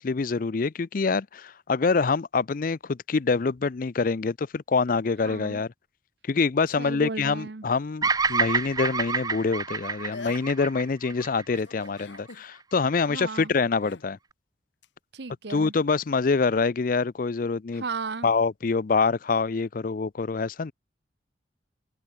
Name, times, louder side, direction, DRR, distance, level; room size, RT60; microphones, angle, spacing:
voice 1, 0.0-5.7 6.3-14.2 15.5-17.8 18.2-20.7, left 4 dB, 45° left, 0.5 m, -25 dB
voice 2, 5.2-5.6 6.8-7.7 13.1-13.6 15.1-15.7 17.7-18.3, right 4 dB, 65° right, 0.9 m, -35 dB
Bird vocalization bird call bird song, 8.0-12.3, right 4 dB, 20° right, 0.5 m, -28 dB
sound 1, 8.3-8.9 9.8-9.9 10.1-10.8 11.6-12.5 13.8-14.1 14.8-14.9, left 4 dB, 75° left, 1.2 m, -44 dB
head